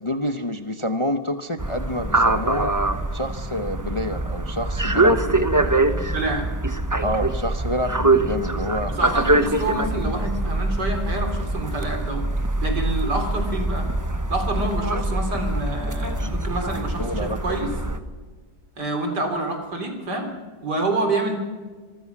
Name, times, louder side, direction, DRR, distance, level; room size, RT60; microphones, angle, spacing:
voice 1, 0.0-2.7 3.1-5.7 7.0-8.9 17.0-17.7, left 1 dB, 25° left, 8 dB, 0.8 m, -28 dB
sound 1, 1.6-18.0, right 2 dB, 15° right, 0.9 m, -24 dB
voice 2, 6.1-6.5 8.9-12.3 12.6-13.9 14.3-17.7 18.8-20.3 20.6-21.4, right 2 dB, 85° right, 4 dB, 4.0 m, -27 dB
25.5 x 23.5 x 6.1 m, 1.4 s
omnidirectional pair, 1.8 m